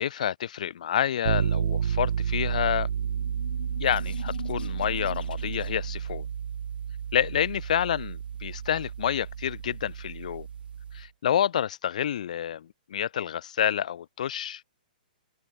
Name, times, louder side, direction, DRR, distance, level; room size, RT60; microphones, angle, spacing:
voice 1, 0.0-2.9 3.8-6.2 7.1-10.5 10.9-14.6, left 9 dB, 50° left, 0.9 m, -28 dB
sound 1, 1.2-11.1, right 8 dB, 85° right, 0.4 m, -31 dB
sound 2, 3.0-6.0, left 7 dB, 75° left, 2.1 m, -44 dB
hypercardioid pair, 175°, 5 cm